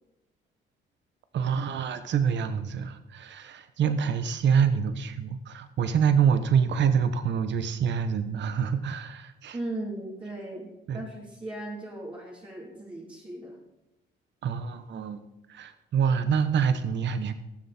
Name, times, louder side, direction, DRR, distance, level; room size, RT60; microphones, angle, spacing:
voice 1, 1.3-9.6 10.9-11.0 14.4-15.2 15.5-17.3, right 7 dB, 65° right, 11 dB, 1.1 m, -26 dB
voice 2, 9.5-13.6, right 1 dB, 25° right, -5 dB, 3.3 m, -37 dB
19.0 x 7.6 x 4.3 m, 0.91 s
cardioid pair, 90°, 20 cm